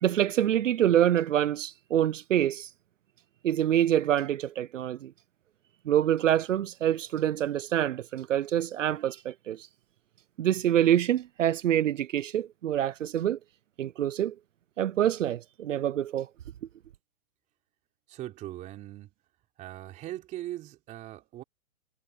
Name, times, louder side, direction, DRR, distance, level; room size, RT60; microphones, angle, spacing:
voice 1, 0.0-2.7 3.4-5.1 5.8-9.7 10.4-13.4 13.8-14.3 14.8-16.3, right 11 dB, 60° right, 0.8 m, -26 dB
voice 2, 18.1-19.1 19.6-21.4, right 14 dB, 15° right, 3.7 m, -40 dB
hypercardioid pair, 165°, 43 cm